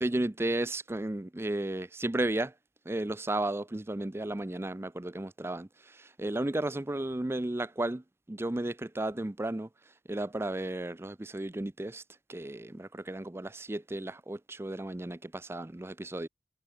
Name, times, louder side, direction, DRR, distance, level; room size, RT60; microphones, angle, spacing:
voice 1, 0.0-2.5 2.9-5.7 6.0-8.0 8.3-9.7 10.1-12.0 12.3-16.3, right 1 dB, 15° right, 0.5 m, -33 dB
head